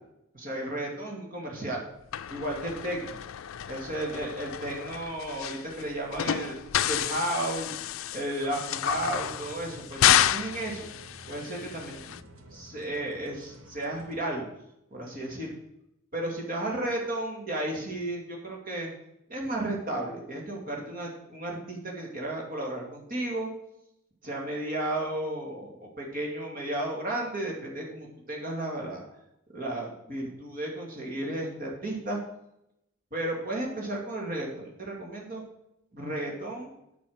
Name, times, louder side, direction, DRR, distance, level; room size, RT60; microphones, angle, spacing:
voice 1, 0.3-1.8 2.3-3.2 3.7-6.6 6.9-7.7 8.1-10.9 11.3-12.0 12.5-14.5 14.9-15.5 16.1-18.9 19.3-23.5 24.2-29.0 29.5-32.2 33.1-35.4 35.9-36.7, right 1 dB, 45° right, -1 dB, 2.3 m, -33 dB
sound 1, 2.1-12.2, left 11 dB, 80° left, 0.4 m, -30 dB
sound 2, 8.7-14.2, right 1 dB, 85° right, 1.3 m, -50 dB
8.5 x 6.9 x 6.4 m, 0.82 s
head